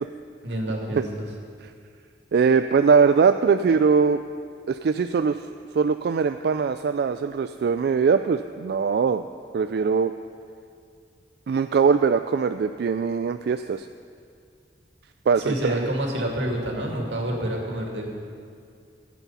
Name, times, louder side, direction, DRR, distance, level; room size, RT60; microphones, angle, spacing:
voice 1, 0.4-1.0 15.4-18.1, right 1 dB, 85° right, 0 dB, 2.3 m, -28 dB
voice 2, 2.3-4.2 4.7-5.4 5.7-9.2 9.5-10.1 11.5-13.9 15.3-15.9, right 5 dB, 60° right, 9 dB, 0.3 m, -21 dB
15.0 x 8.3 x 5.6 m, 2.2 s
head